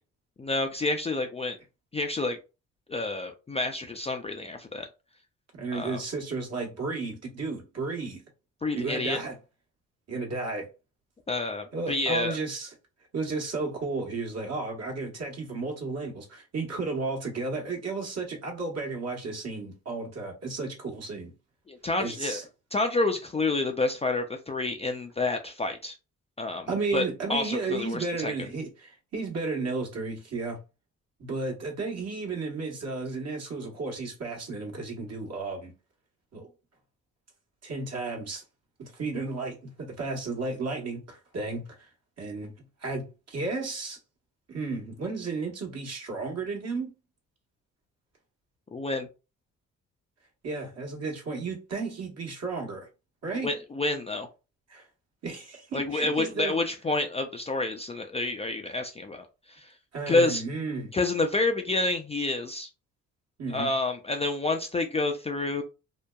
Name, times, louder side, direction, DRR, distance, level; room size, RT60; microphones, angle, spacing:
voice 1, 0.4-1.6 1.9-2.4 2.9-4.9 5.7-6.0 8.6-9.2 11.3-12.4 21.7-22.4 22.7-26.0 26.4-27.0 27.3-28.3 48.7-49.1 53.4-54.3 55.7-59.7 60.1-60.4 60.9-62.7 63.5-65.6, left 2 dB, 20° left, 0.4 m, -29 dB
voice 2, 5.5-8.2 8.8-9.3 10.1-10.7 11.7-12.7 13.1-21.3 22.0-22.4 26.7-30.6 31.2-35.7 36.3-36.5 37.6-38.4 38.8-41.6 42.2-42.5 42.8-44.0 44.5-46.9 50.4-52.9 53.2-53.5 54.7-54.8 55.2-56.5 59.9-60.9 63.4-63.7, right 3 dB, 50° right, 1.2 m, -33 dB
2.7 x 2.1 x 2.2 m
supercardioid pair, 60°, 33 cm